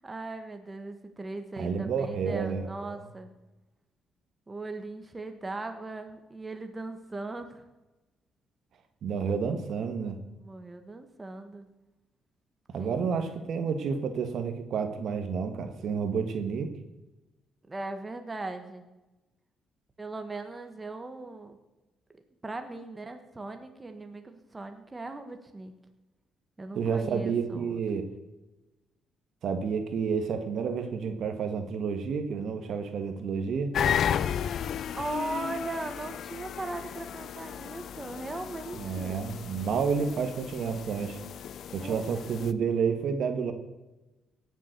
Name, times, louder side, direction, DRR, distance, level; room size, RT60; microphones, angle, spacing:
voice 1, 0.0-3.3 4.5-7.7 10.4-11.7 12.8-13.3 17.7-18.9 20.0-21.6 22.4-25.7 26.6-27.8 34.9-39.2 41.8-42.2, right 2 dB, 20° right, 6 dB, 1.6 m, -39 dB
voice 2, 1.6-3.0 9.0-10.2 12.7-16.7 26.7-28.1 29.4-33.7 38.7-41.2 41.7-43.5, right 6 dB, 65° right, 8 dB, 1.7 m, -30 dB
sound 1, 33.7-42.5, left 9 dB, 65° left, 0.5 m, -34 dB
17.0 x 7.4 x 6.8 m, 1.1 s
cardioid pair, 90°, 0 cm